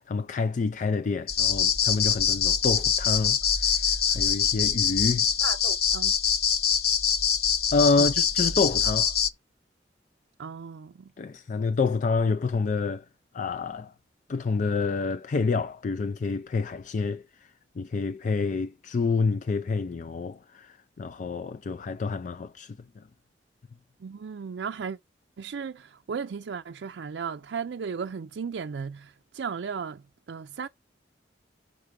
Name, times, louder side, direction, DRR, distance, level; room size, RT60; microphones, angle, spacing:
voice 1, 0.0-5.3 7.7-9.1 11.2-13.1 13.3-13.9 14.3-17.5 17.8-23.0, left 4 dB, 45° left, 0.4 m, -28 dB
sound 1, 1.3-9.3, left 7 dB, 60° left, 0.8 m, -24 dB
voice 2, 5.4-6.1 8.0-8.1 10.4-11.1 24.0-25.0 25.4-30.7, right 6 dB, 90° right, 0.4 m, -35 dB
6.5 x 4.5 x 5.1 m
head